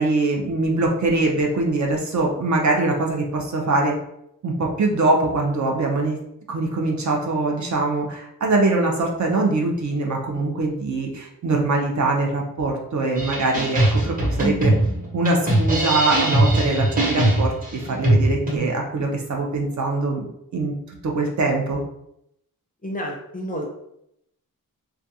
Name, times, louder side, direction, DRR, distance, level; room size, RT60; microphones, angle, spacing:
voice 1, 0.0-4.0 4.4-6.2 6.5-14.7 15.1-20.7 21.0-21.8, right 2 dB, 55° right, 0 dB, 0.5 m, -23 dB
sound 1, 13.2-18.6, right 1 dB, 25° right, 0.8 m, -20 dB
voice 2, 22.8-23.7, equal, 25° left, 0 dB, 0.4 m, -30 dB
2.3 x 2.3 x 2.7 m, 0.78 s
wide cardioid pair, 155°, 35 cm